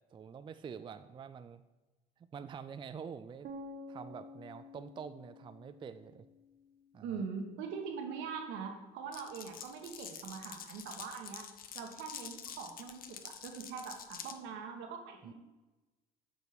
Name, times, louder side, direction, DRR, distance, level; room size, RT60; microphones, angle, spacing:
voice 1, 0.1-1.6 2.2-3.5 3.9-6.3 6.9-7.2 15.2-15.3, right 6 dB, 25° right, 11 dB, 0.4 m, -46 dB
sound 1, 3.4-7.4, left 1 dB, 50° right, 1.0 m, -51 dB
voice 2, 7.0-11.4 11.7-15.3, right 6 dB, 70° right, 3 dB, 1.4 m, -42 dB
Glass, 9.1-14.4, left 8 dB, 50° left, 0.8 m, -47 dB
8.3 x 5.3 x 4.2 m, 1.1 s
supercardioid pair, 75°, 20 cm